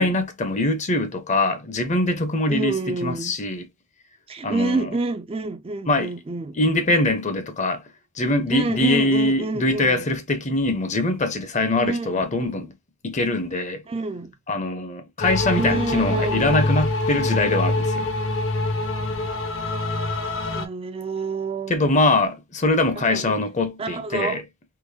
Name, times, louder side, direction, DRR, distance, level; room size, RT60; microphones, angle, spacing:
voice 1, 0.0-3.6 4.4-4.9 5.9-6.1 6.6-7.8 8.2-12.7 13.0-13.8 14.5-18.1 21.7-24.4, left 2 dB, 35° left, 0.6 m, -23 dB
voice 2, 2.5-3.4 4.3-6.6 8.5-10.1 11.7-12.3 13.9-14.3 15.6-16.6 20.5-21.9 23.1-23.3 23.8-24.4, right 3 dB, 25° right, 0.3 m, -28 dB
sound 1, 15.2-20.7, left 2 dB, 60° left, 0.9 m, -25 dB
3.9 x 2.9 x 2.7 m
head